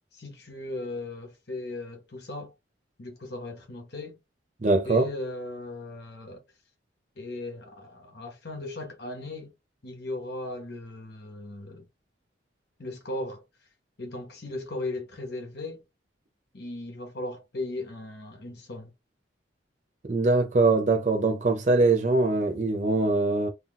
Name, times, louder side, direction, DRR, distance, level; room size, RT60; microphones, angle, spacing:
voice 1, 0.1-2.5 3.0-4.2 4.8-6.4 7.2-9.5 9.8-11.9 12.8-13.4 14.0-15.8 16.5-18.9, left 2 dB, 55° left, 0.9 m, -37 dB
voice 2, 4.6-5.1 20.0-23.5, right 3 dB, 40° right, 0.6 m, -22 dB
2.7 x 2.3 x 3.9 m
head